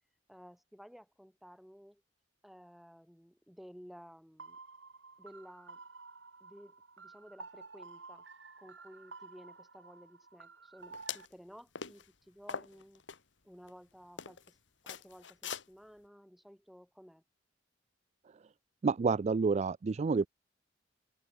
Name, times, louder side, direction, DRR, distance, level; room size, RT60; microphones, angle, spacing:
voice 1, 0.3-2.0 2.4-4.6 5.2-5.8 6.4-8.2 8.6-13.0 13.4-14.6 14.8-17.2, equal, ahead, 7.6 m, -55 dB
sound 1, 4.4-11.3, right 4 dB, 75° right, 6.1 m, -52 dB
sound 2, 10.9-11.3 11.7-12.0 12.5-13.2 13.7-13.8 14.2-14.5 14.9-15.6, left 6 dB, 75° left, 1.9 m, -41 dB
voice 2, 18.8-20.3, right 4 dB, 35° right, 0.3 m, -29 dB
head